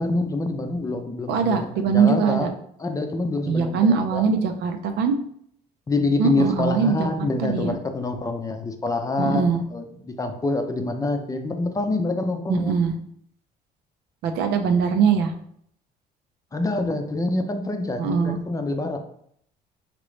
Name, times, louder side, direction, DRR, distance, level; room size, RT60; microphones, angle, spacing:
voice 1, 0.0-2.5 2.8-4.3 5.9-12.7 16.5-19.0, left 2 dB, 20° left, 5 dB, 0.6 m, -26 dB
voice 2, 1.3-2.5 3.5-5.2 6.2-7.1 7.4-7.7 9.2-9.6 12.5-12.9 14.2-15.3 18.0-18.4, right 6 dB, 80° right, 6 dB, 0.6 m, -21 dB
5.0 x 2.9 x 3.2 m, 0.68 s
cardioid pair, 110°, 17 cm